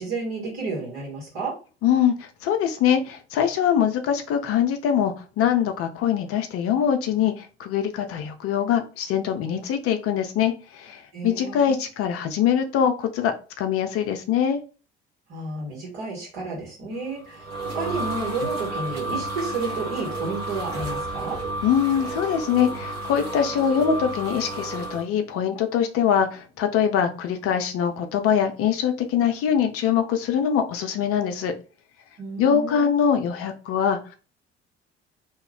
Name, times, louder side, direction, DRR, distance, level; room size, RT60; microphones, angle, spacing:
voice 1, 0.0-1.5 11.1-11.8 15.3-21.4 32.2-32.9, right 3 dB, 55° right, -4 dB, 1.6 m, -31 dB
voice 2, 1.8-14.6 21.6-31.5 32.4-34.1, left 8 dB, 45° left, 6 dB, 0.6 m, -23 dB
sound 1, 17.0-25.0, right 2 dB, 75° right, 1.1 m, -31 dB
2.9 x 2.3 x 3.4 m, 0.35 s
figure-of-eight pair, 55°, 32 cm